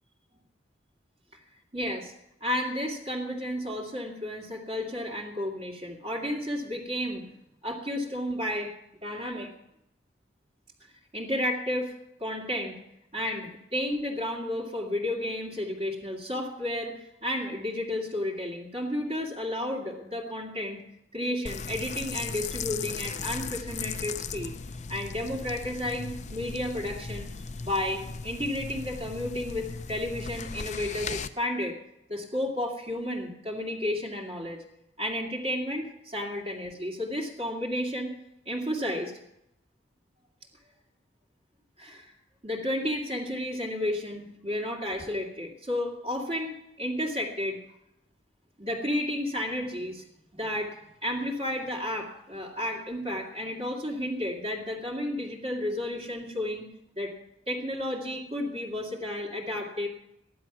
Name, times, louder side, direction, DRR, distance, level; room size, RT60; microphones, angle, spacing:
voice 1, 1.7-2.1 2.4-7.2 7.6-8.7 9.0-9.5 11.1-12.7 13.1-20.8 21.1-24.5 24.9-27.3 27.6-31.8 32.1-34.6 35.0-38.1 38.5-39.1 41.8-42.1 42.4-47.6 48.6-50.0 50.3-56.7 57.0-57.1 57.5-59.9, left 1 dB, 35° right, -3 dB, 2.3 m, -32 dB
sound 1, 21.5-31.3, left 5 dB, 40° left, 0.6 m, -37 dB
14.0 x 11.0 x 6.0 m, 0.80 s
head